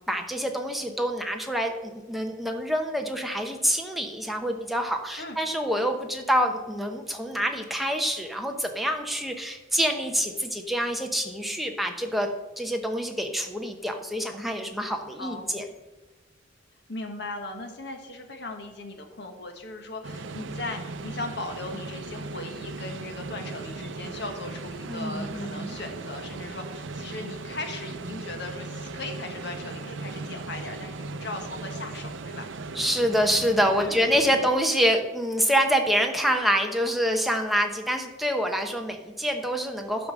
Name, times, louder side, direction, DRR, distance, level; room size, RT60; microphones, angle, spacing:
voice 1, 0.1-12.3 12.6-15.7 24.8-25.7 32.7-40.1, equal, ahead, 3 dB, 0.9 m, -26 dB
voice 2, 15.2-15.5 16.9-32.5 33.8-34.4, left 2 dB, 60° left, 4 dB, 1.4 m, -38 dB
sound 1, 20.0-34.5, right 3 dB, 75° right, 0.6 m, -38 dB
12.0 x 5.2 x 6.3 m, 1.1 s
head